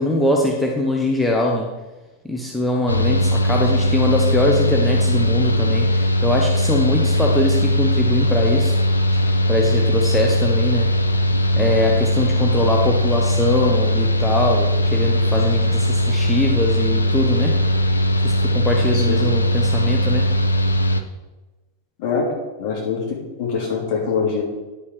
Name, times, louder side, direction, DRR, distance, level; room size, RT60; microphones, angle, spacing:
voice 1, 0.0-1.7 2.2-8.8 9.5-10.9 11.6-17.6 18.2-20.3, left 1 dB, 5° left, -1 dB, 1.0 m, -22 dB
Mechanical fan, 2.9-21.0, left 1 dB, 80° left, 0.6 m, -19 dB
voice 2, 22.0-22.3 22.6-24.4, left 5 dB, 45° left, -1 dB, 3.0 m, -24 dB
10.5 x 5.5 x 4.9 m, 1.1 s
figure-of-eight pair, 90°, 0 cm